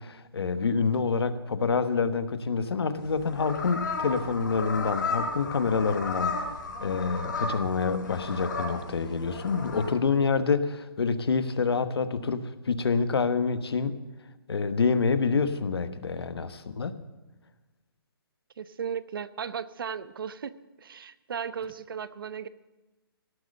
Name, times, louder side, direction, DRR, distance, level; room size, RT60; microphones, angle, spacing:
voice 1, 0.0-6.5 6.8-13.9 14.5-17.0, left 5 dB, 85° left, 11 dB, 1.2 m, -27 dB
sound 1, 3.0-9.9, left 3 dB, 50° left, 4.1 m, -34 dB
voice 2, 18.6-20.5 20.8-22.5, right 7 dB, 65° right, 15 dB, 0.8 m, -36 dB
18.0 x 8.2 x 6.5 m, 1.1 s
hypercardioid pair, 170°, 13 cm